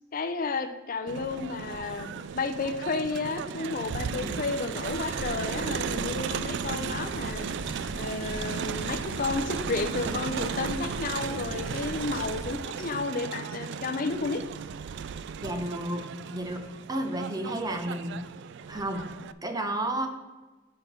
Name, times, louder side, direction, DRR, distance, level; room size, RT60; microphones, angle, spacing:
voice 1, 0.1-7.5 8.0-14.4, left 4 dB, 45° left, 8 dB, 0.5 m, -32 dB
Crowd, 1.1-19.3, right 7 dB, 60° right, 0.3 m, -35 dB
sound 1, 4.8-12.6, left 1 dB, 85° left, 0.9 m, -40 dB
voice 2, 15.4-18.2 18.7-19.1 19.4-20.1, right 1 dB, 20° right, 6 dB, 0.7 m, -32 dB
6.3 x 5.3 x 5.6 m, 1.2 s
head